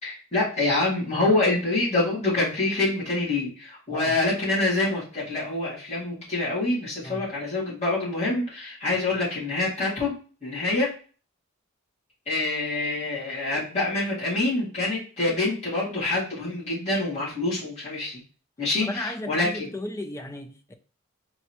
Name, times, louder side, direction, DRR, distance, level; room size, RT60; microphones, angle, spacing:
voice 1, 0.0-10.1 10.4-10.9 12.3-18.2 18.6-19.7, left 2 dB, 30° left, 2.2 m, -26 dB
voice 2, 18.8-20.7, left 1 dB, 15° left, 0.3 m, -35 dB
4.6 x 3.1 x 2.9 m
head